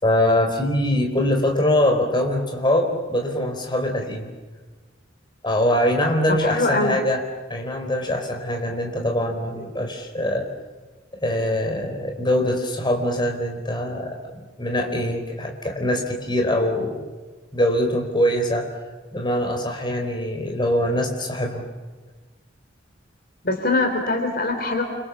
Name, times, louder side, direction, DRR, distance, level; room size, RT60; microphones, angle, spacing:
voice 1, 0.0-4.3 5.4-7.2 7.5-10.5 11.2-17.1 17.5-18.7 19.1-21.6, left 1 dB, 25° left, 3 dB, 4.5 m, -23 dB
voice 2, 6.4-7.0 23.4-24.8, left 2 dB, 50° left, 5 dB, 3.5 m, -22 dB
29.5 x 25.5 x 7.3 m, 1.3 s
head